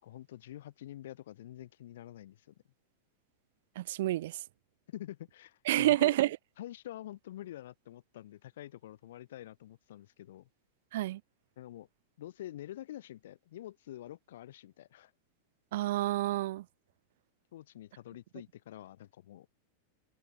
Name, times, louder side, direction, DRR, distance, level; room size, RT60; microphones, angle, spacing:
voice 1, 0.0-2.5 4.9-6.2 6.6-10.5 11.6-11.9 12.2-15.1 17.5-19.5, left 13 dB, 60° left, 4.6 m, -47 dB
voice 2, 3.8-4.4 5.7-6.3 10.9-11.2 15.7-16.6, right 15 dB, 55° right, 0.9 m, -28 dB
figure-of-eight pair, 90°, 0 cm